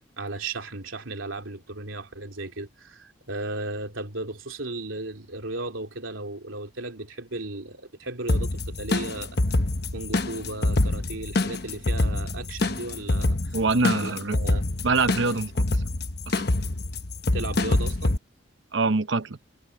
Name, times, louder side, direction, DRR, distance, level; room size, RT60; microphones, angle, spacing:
voice 1, 0.2-9.4 9.9-13.6 13.9-14.6 17.3-18.2, right 2 dB, 85° right, 3.2 m, -35 dB
sound 1, 8.3-18.2, left 2 dB, 55° left, 1.1 m, -26 dB
voice 2, 13.5-14.4 14.8-15.7 16.3-16.5 18.7-19.4, right 3 dB, 70° right, 0.8 m, -24 dB
head